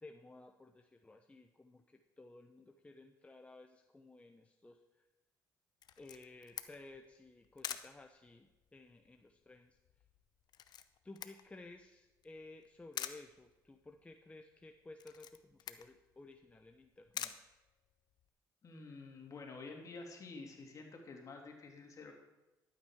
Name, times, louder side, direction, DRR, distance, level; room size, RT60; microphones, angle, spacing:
voice 1, 0.0-5.0 6.0-9.8 11.0-17.4, left 2 dB, 15° left, 5 dB, 0.8 m, -56 dB
Camera, 5.8-18.3, left 10 dB, 65° left, 0.7 m, -49 dB
voice 2, 18.6-22.1, left 3 dB, 45° left, 1 dB, 2.9 m, -49 dB
12.0 x 8.8 x 4.9 m, 1.1 s
supercardioid pair, 75°, 8 cm